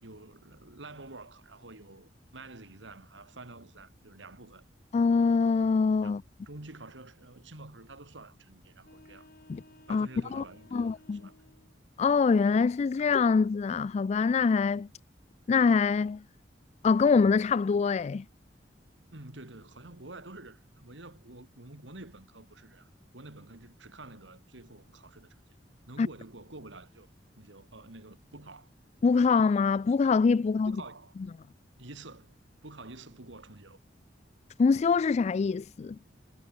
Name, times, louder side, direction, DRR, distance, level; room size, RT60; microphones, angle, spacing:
voice 1, 0.0-4.6 6.0-6.2 6.5-9.3 9.9-10.9 11.2-11.3 19.1-25.4 25.9-27.1 27.4-28.7 30.7-31.1 31.8-33.8, right 2 dB, 90° right, 2.8 m, -48 dB
voice 2, 4.9-6.2 9.5-9.6 9.9-10.4 10.7-11.2 12.0-14.9 15.5-16.2 16.8-18.2 26.0-26.1 29.0-30.8 34.6-36.0, left 5 dB, 35° left, 0.3 m, -24 dB
sound 1, 8.8-11.8, left 1 dB, 55° left, 4.5 m, -57 dB
head